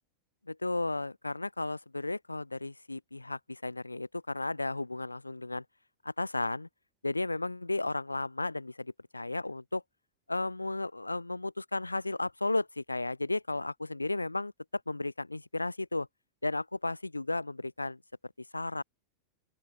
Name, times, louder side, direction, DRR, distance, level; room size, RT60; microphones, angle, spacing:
voice 1, 0.5-5.6 6.0-6.7 7.0-9.8 10.3-16.1 16.4-18.8, left 2 dB, 85° left, 6.5 m, -34 dB
open air
figure-of-eight pair, 90°, 0 cm